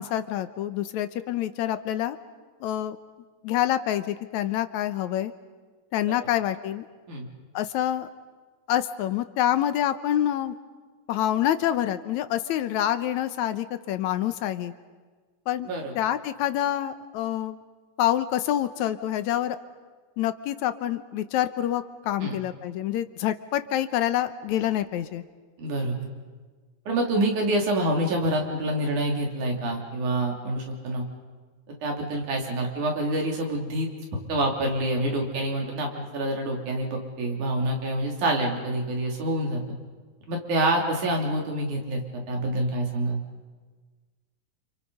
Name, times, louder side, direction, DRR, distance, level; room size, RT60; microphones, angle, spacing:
voice 1, 0.0-2.2 2.6-3.0 3.4-5.3 5.9-6.9 7.5-8.1 8.7-10.6 11.1-14.7 15.5-15.7 16.0-17.6 18.0-19.6 20.2-25.2, left 12 dB, 80° left, 11 dB, 2.2 m, -27 dB
voice 2, 25.6-26.0 26.9-31.0 31.7-33.9 34.3-39.6 40.3-43.2, right 1 dB, 90° right, 1 dB, 4.6 m, -27 dB
29.0 x 28.0 x 5.5 m, 1.4 s
omnidirectional pair, 3.4 m